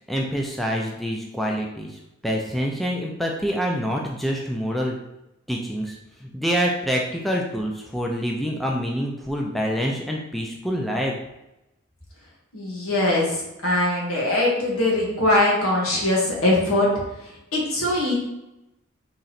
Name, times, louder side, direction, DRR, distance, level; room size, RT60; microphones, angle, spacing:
voice 1, 0.1-1.9 2.2-5.0 5.5-6.0 6.2-11.2, equal, ahead, -1 dB, 0.4 m, -26 dB
voice 2, 12.5-16.9 17.5-18.1, left 1 dB, 80° left, -3 dB, 1.5 m, -21 dB
3.8 x 3.0 x 4.2 m, 0.92 s
head